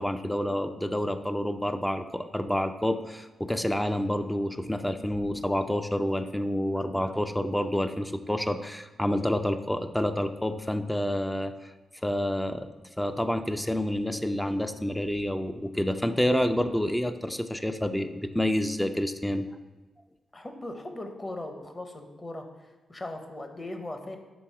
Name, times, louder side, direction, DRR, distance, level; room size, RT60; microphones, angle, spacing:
voice 1, 0.0-11.7 12.0-12.7 13.0-19.5, left 1 dB, 5° left, 8 dB, 0.3 m, -28 dB
voice 2, 20.3-24.2, left 1 dB, 25° left, 5 dB, 0.8 m, -39 dB
6.1 x 3.5 x 4.6 m, 1.2 s
cardioid pair, 100°, 0 cm